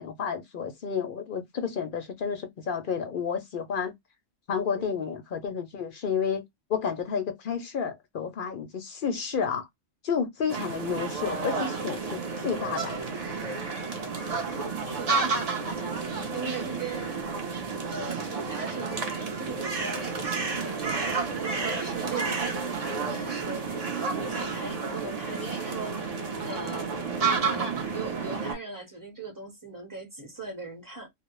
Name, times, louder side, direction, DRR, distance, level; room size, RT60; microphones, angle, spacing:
voice 1, 0.0-3.9 4.5-6.4 6.7-9.7 10.0-13.0, left 6 dB, 60° left, 0.6 m, -31 dB
sound 1, 10.5-28.5, right 4 dB, 45° right, 0.5 m, -31 dB
voice 2, 14.9-15.4 15.8-15.9 16.3-17.2 17.9-23.7 24.1-26.2 26.4-26.9 27.4-31.1, right 4 dB, 15° right, 0.8 m, -40 dB
2.3 x 2.0 x 2.9 m
omnidirectional pair, 1.4 m